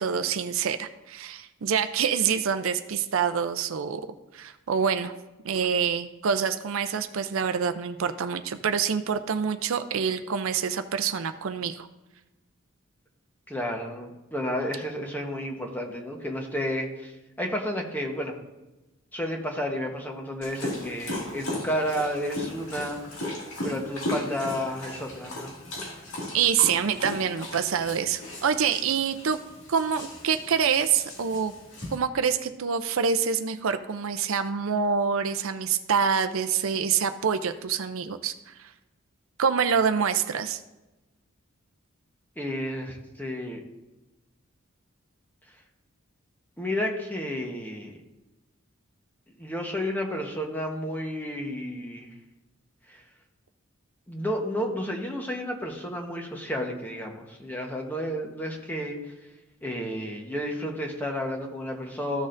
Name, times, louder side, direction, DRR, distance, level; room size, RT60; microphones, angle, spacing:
voice 1, 0.0-4.0 4.3-5.1 5.4-11.9 26.3-29.4 29.7-31.5 31.9-38.7 39.4-40.6, right 7 dB, 70° right, 9 dB, 0.5 m, -26 dB
voice 2, 13.5-17.1 17.4-18.3 19.1-23.0 23.6-25.6 42.4-43.6 46.6-47.9 49.4-52.1 52.9-53.0 54.1-59.0 59.6-62.3, equal, 10° left, 1 dB, 1.0 m, -31 dB
Dog, 20.4-32.0, left 1 dB, 75° left, 2.1 m, -36 dB
14.5 x 6.3 x 2.6 m, 1.0 s
head